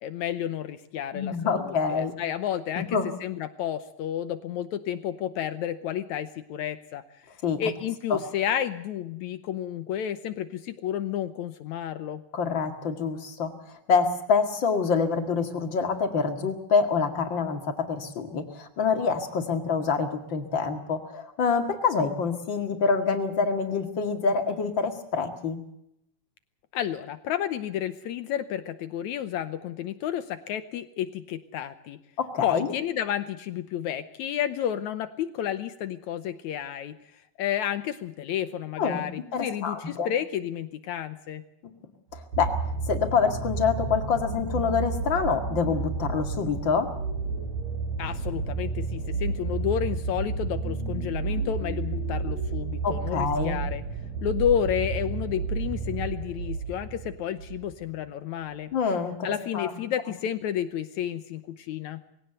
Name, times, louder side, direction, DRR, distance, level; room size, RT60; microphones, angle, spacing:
voice 1, 0.0-7.0 7.6-12.2 26.7-32.0 32.4-37.0 37.4-41.4 48.0-53.8 54.2-58.7 59.2-62.0, left 10 dB, 70° left, 12 dB, 2.1 m, -31 dB
voice 2, 1.1-2.1 2.9-3.1 7.4-7.6 8.1-8.2 12.3-25.6 32.2-32.7 38.8-39.0 39.3-40.1 42.1-42.5 42.9-46.9 52.8-53.6 58.7-59.7, left 5 dB, 40° left, 6 dB, 2.4 m, -26 dB
sound 1, 42.1-57.7 58.5-58.6, right 4 dB, 60° right, 7.4 m, -31 dB
21.0 x 17.0 x 7.9 m, 0.78 s
omnidirectional pair, 3.7 m